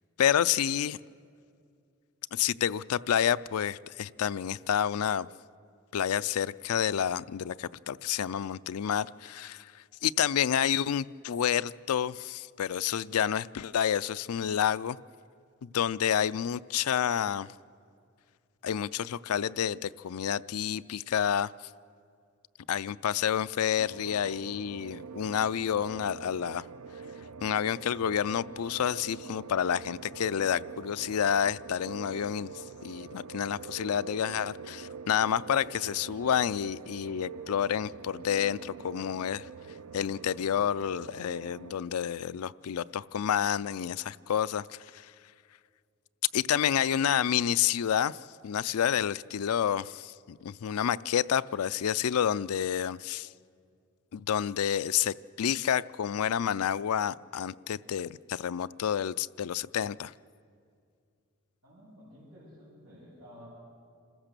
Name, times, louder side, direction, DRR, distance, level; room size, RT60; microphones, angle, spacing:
voice 1, 0.2-1.0 2.3-5.3 5.9-15.0 15.6-17.5 18.6-21.5 22.7-26.7 27.4-39.5 39.9-45.1 46.3-53.3 54.1-60.1, left 9 dB, 80° left, 16 dB, 0.4 m, -29 dB
sound 1, 23.8-41.8, right 5 dB, 85° right, 0.5 m, -45 dB
voice 2, 61.6-63.5, equal, 55° right, -11 dB, 7.6 m, -52 dB
27.0 x 15.0 x 6.8 m, 2.3 s
head